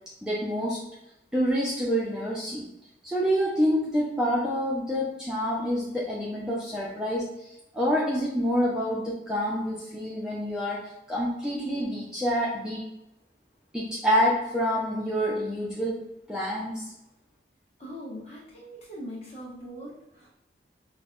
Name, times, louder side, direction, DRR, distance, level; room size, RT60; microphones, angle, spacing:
voice 1, 0.2-0.8 1.3-2.6 3.0-7.3 7.7-10.8 11.1-12.8 13.7-16.9, equal, 5° right, -6 dB, 0.5 m, -27 dB
voice 2, 17.8-20.3, equal, 35° left, -5 dB, 1.1 m, -41 dB
5.2 x 2.2 x 2.4 m, 0.87 s
head